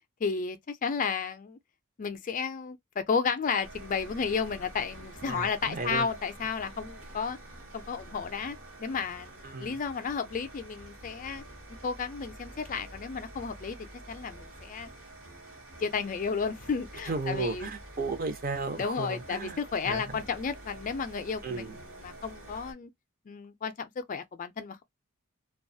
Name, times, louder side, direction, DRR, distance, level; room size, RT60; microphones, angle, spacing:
voice 1, 0.2-1.6 2.0-7.4 7.7-11.4 11.8-13.8 14.1-14.9 15.8-17.7 18.8-22.9 23.3-24.8, left 5 dB, 40° left, 0.4 m, -33 dB
sound 1, 3.6-22.7, right 1 dB, 65° right, 1.0 m, -48 dB
voice 2, 5.3-6.1 9.4-9.8 17.1-19.6 19.8-20.0 21.4-21.8, right 4 dB, 40° right, 0.6 m, -34 dB
2.4 x 2.3 x 2.6 m
head